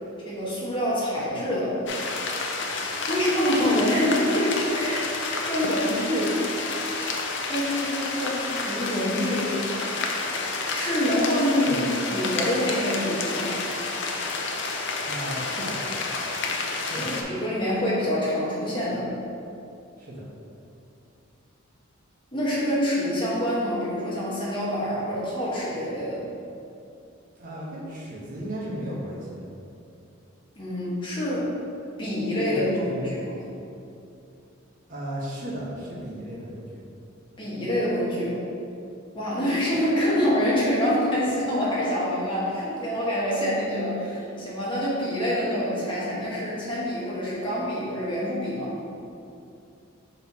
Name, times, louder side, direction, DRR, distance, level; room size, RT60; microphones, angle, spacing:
voice 1, 0.2-1.8 3.1-6.4 7.5-9.5 10.7-11.8 12.1-13.6 16.9-19.1 22.3-26.2 30.5-31.5 32.0-32.7 33.1-33.4 37.4-38.4 39.1-48.7, equal, 25° left, -8 dB, 1.5 m, -26 dB
sound 1, 1.9-17.2, left 3 dB, 60° left, 0.6 m, -30 dB
voice 2, 15.1-15.7 16.8-17.1 20.0-20.2 27.4-29.4 32.5-33.4 34.9-36.8, right 1 dB, 40° right, -6 dB, 1.1 m, -35 dB
5.6 x 4.0 x 4.2 m, 2.7 s
head